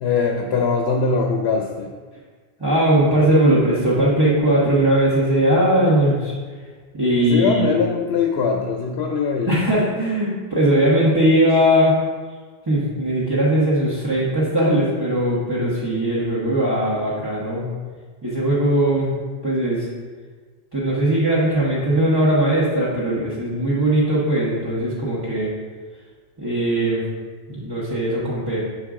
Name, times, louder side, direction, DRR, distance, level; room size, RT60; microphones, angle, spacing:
voice 1, 0.0-1.9 7.1-9.6, left 5 dB, 85° left, 2 dB, 0.8 m, -21 dB
voice 2, 2.6-6.3 6.9-7.7 9.5-12.0 12.7-17.7 18.2-19.1 19.4-19.8 20.7-25.5 26.4-27.0 27.5-28.6, right 1 dB, 25° right, -9 dB, 1.1 m, -19 dB
6.3 x 4.6 x 3.6 m, 1.5 s
omnidirectional pair, 1.0 m